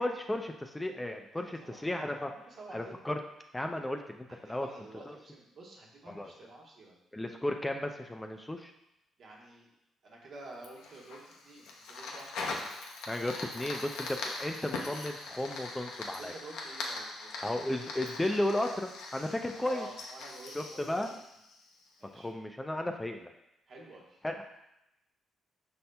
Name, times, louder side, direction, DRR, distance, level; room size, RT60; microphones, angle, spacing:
voice 1, 0.0-2.3 2.7-3.2 3.5-4.7 6.1-6.3 7.1-8.7 13.1-16.3 17.4-19.9 20.5-21.1 22.1-23.3 24.2-24.4, left 1 dB, 10° left, 4 dB, 0.4 m, -34 dB
voice 2, 1.3-2.0 2.2-3.0 4.3-7.0 9.2-9.7 10.0-12.4 16.1-17.4 19.6-21.1 22.0-22.3 23.7-24.2, right 2 dB, 60° right, -2 dB, 1.1 m, -50 dB
Fire, 10.6-22.0, left 3 dB, 90° left, 0.7 m, -41 dB
5.4 x 4.2 x 2.2 m, 0.86 s
cardioid pair, 90°, 0 cm